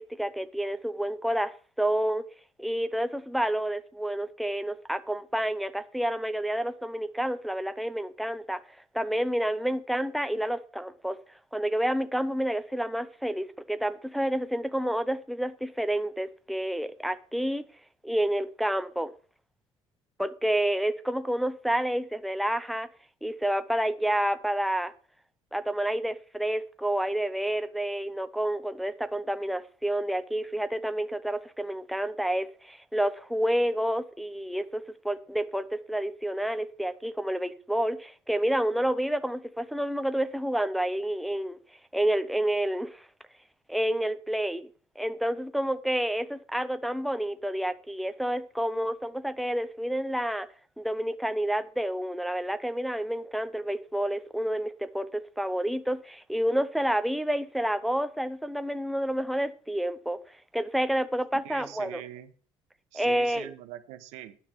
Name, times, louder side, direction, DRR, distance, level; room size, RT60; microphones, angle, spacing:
voice 1, 0.0-2.2 2.6-8.6 8.9-11.2 11.5-17.6 18.0-19.1 20.2-22.9 23.2-24.9 25.5-41.6 41.9-43.1 43.7-44.7 45.0-50.5 50.8-55.1 55.4-60.2 60.5-62.0 62.9-63.5, right 1 dB, ahead, 0.6 m, -29 dB
voice 2, 61.4-62.3 62.9-64.4, right 13 dB, 90° right, 1.1 m, -43 dB
9.7 x 6.2 x 7.2 m
cardioid pair, 105°, 11 cm